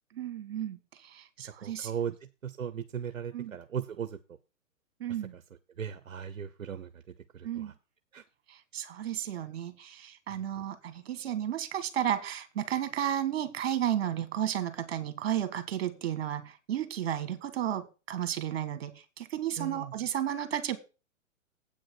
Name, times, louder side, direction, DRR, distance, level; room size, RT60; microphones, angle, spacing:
voice 1, 0.1-1.9 3.3-3.6 5.0-5.3 7.4-7.7 8.5-20.8, right 10 dB, 50° right, 1.7 m, -33 dB
voice 2, 1.6-2.1 2.4-4.2 5.8-6.9 7.3-7.7 8.1-8.2 19.6-19.9, right 8 dB, 75° right, 0.9 m, -37 dB
8.3 x 6.3 x 6.3 m
figure-of-eight pair, 125°, 40 cm